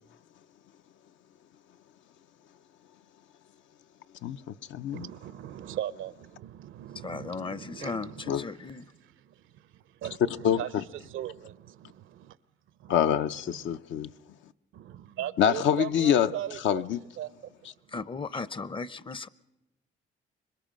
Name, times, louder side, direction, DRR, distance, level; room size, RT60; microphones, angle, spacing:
voice 1, 4.2-5.1 8.3-8.4 10.4-10.6 12.9-14.1 15.4-16.3 16.6-17.0, left 9 dB, 70° left, 0.6 m, -25 dB
voice 2, 4.9-8.7 9.0-12.4 12.8-13.1 13.6-13.8 14.7-16.8 17.2-17.7, right 12 dB, 80° right, 0.7 m, -39 dB
voice 3, 7.0-8.8 17.9-19.3, left 4 dB, 25° left, 0.6 m, -36 dB
25.5 x 21.5 x 5.1 m
cardioid pair, 90°, 20 cm